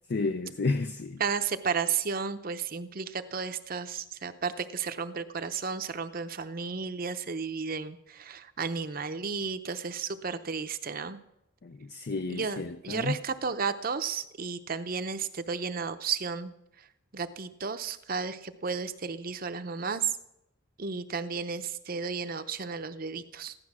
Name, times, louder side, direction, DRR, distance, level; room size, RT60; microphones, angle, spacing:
voice 1, 0.1-1.2 11.6-13.2, left 3 dB, 55° left, 0.5 m, -31 dB
voice 2, 1.2-11.2 12.3-16.9 17.1-20.2 20.8-23.6, right 5 dB, 45° right, 0.7 m, -33 dB
15.5 x 11.5 x 6.1 m
head